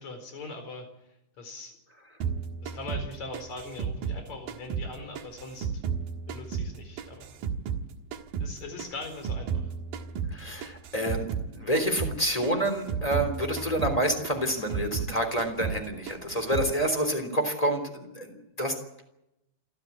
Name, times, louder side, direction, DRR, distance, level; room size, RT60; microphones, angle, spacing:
voice 1, 0.0-1.8 2.6-5.8 6.3-7.3 8.4-9.7, left 2 dB, 50° left, 6 dB, 5.5 m, -41 dB
sound 1, 2.2-4.9 5.2-7.9 8.1-11.5 11.7-12.2 12.4-15.1 15.4-15.8 16.1-16.7, right 6 dB, 75° right, 3.3 m, -33 dB
voice 2, 10.3-18.8, right 1 dB, 10° left, 6 dB, 3.0 m, -28 dB
28.0 x 13.5 x 8.5 m, 0.88 s
omnidirectional pair, 4.2 m